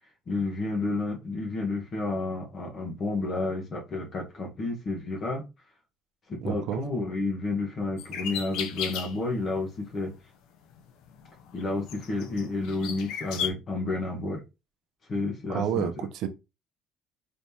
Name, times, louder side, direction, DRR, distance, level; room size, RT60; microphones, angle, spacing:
voice 1, 0.3-5.4 6.3-10.1 11.5-14.4 15.1-16.0, left 2 dB, 35° left, 1.2 m, -31 dB
voice 2, 6.4-6.8 15.5-16.3, right 9 dB, 70° right, 0.7 m, -30 dB
sound 1, 8.0-9.4 9.9-10.2 10.8-13.5, left 8 dB, 75° left, 0.6 m, -35 dB
4.2 x 3.4 x 2.8 m
cardioid pair, 130°, 0 cm